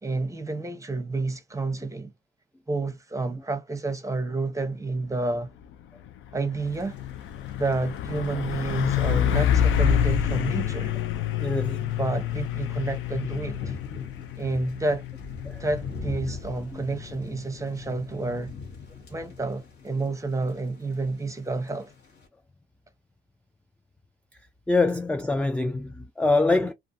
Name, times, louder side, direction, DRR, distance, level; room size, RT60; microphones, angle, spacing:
voice 1, 0.0-2.1 2.7-5.5 6.3-7.0 7.6-10.9 12.0-13.7 14.4-15.0 15.6-18.5 19.1-21.9, right 3 dB, 15° right, 0.7 m, -30 dB
Truck, 5.5-5.7 6.1-18.6, left 9 dB, 80° left, 0.5 m, -28 dB
Thunder / Rain, 6.6-22.3, left 4 dB, 60° left, 1.3 m, -44 dB
voice 2, 11.4-12.0 15.5-15.6 16.7-16.8 24.7-26.7, left 2 dB, 5° left, 0.3 m, -24 dB
2.4 x 2.4 x 2.6 m
cardioid pair, 90°, 20 cm